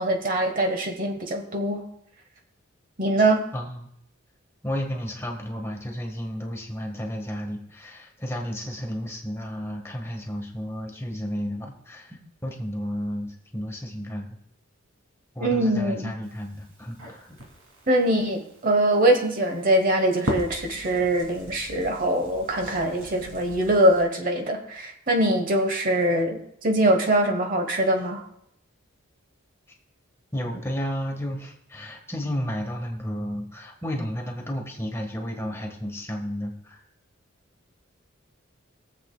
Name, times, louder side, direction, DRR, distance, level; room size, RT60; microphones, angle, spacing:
voice 1, 0.0-1.8 3.0-3.5 15.4-16.1 17.9-28.2, right 1 dB, 40° right, 4 dB, 1.1 m, -23 dB
voice 2, 3.5-3.9 4.6-14.4 15.3-17.4 30.3-36.8, equal, 10° left, 1 dB, 1.3 m, -32 dB
Crackle, 16.2-24.0, equal, 85° right, 2.5 m, -39 dB
22.0 x 7.6 x 2.2 m, 0.72 s
head